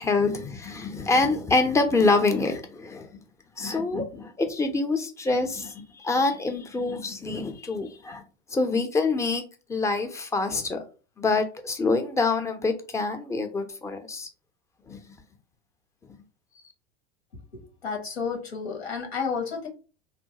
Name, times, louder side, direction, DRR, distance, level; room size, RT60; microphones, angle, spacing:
voice 1, 0.0-3.2 3.6-8.2 8.5-9.4 9.7-10.8 11.2-14.3 14.9-15.0, left 3 dB, 10° left, 0.4 m, -26 dB
voice 2, 17.5-19.7, left 5 dB, 90° left, 1.0 m, -31 dB
3.1 x 2.2 x 2.7 m
hypercardioid pair, 90°, 31 cm